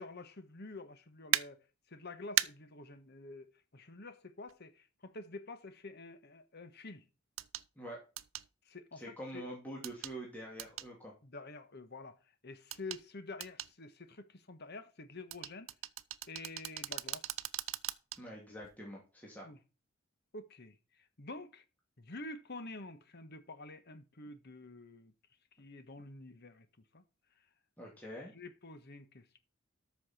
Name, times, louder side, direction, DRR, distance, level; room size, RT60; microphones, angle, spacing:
voice 1, 0.0-7.0 8.6-9.4 11.2-15.7 16.3-17.3 19.4-19.6 20.3-21.6 22.0-25.1 25.6-26.7 26.9-27.0 28.3-29.4, left 2 dB, 55° left, 1.3 m, -48 dB
sound 1, 1.3-1.4 2.4-2.5 4.5-4.6 7.4-7.7 8.2-8.5 9.8-10.2 10.6-10.9 12.7-13.0 13.4-13.7 15.3-18.2 18.6-18.8, right 13 dB, 70° right, 0.5 m, -36 dB
voice 2, 8.9-11.1 18.2-19.5 27.8-28.3, right 1 dB, 10° left, 2.6 m, -46 dB
13.5 x 5.9 x 4.4 m
head